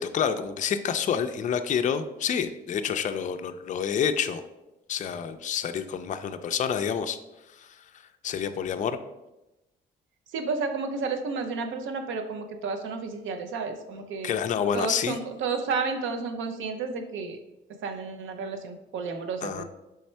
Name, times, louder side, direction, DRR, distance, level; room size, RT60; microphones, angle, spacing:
voice 1, 0.0-4.4 4.9-7.2 7.5-7.9 8.2-9.0 14.2-15.2 19.4-19.6, left 7 dB, 40° left, 8 dB, 0.4 m, -28 dB
voice 2, 10.3-14.4 14.7-17.4 17.8-19.6, right 4 dB, 80° right, 6 dB, 0.6 m, -31 dB
3.5 x 3.1 x 4.3 m, 0.95 s
cardioid pair, 90°, 20 cm